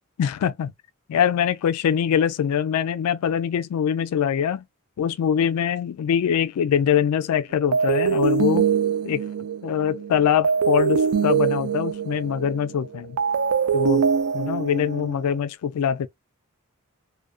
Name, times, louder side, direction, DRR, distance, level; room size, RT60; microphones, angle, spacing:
voice 1, 0.2-0.7 1.1-4.6 5.0-8.7 9.0-9.2 9.6-13.2 13.7-14.1 14.3-16.1, left 8 dB, 85° left, 0.3 m, -23 dB
sound 1, 7.7-15.4, right 7 dB, 70° right, 0.4 m, -23 dB
2.4 x 2.2 x 2.3 m
head